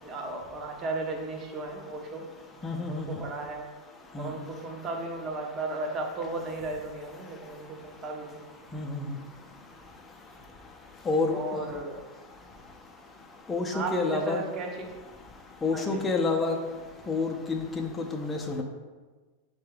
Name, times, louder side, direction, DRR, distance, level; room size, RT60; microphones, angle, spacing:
voice 1, 0.0-2.3 2.9-3.7 4.2-8.4 11.3-12.0 13.7-14.9 15.7-16.0, right 2 dB, 35° right, 2 dB, 0.8 m, -35 dB
voice 2, 2.6-3.1 4.1-4.3 8.7-9.1 11.1-11.4 11.7-11.8 13.5-14.4 15.6-16.6 17.1-18.6, left 3 dB, 15° left, 1 dB, 0.6 m, -28 dB
6.5 x 2.3 x 3.3 m, 1.3 s
hypercardioid pair, 105°, 0 cm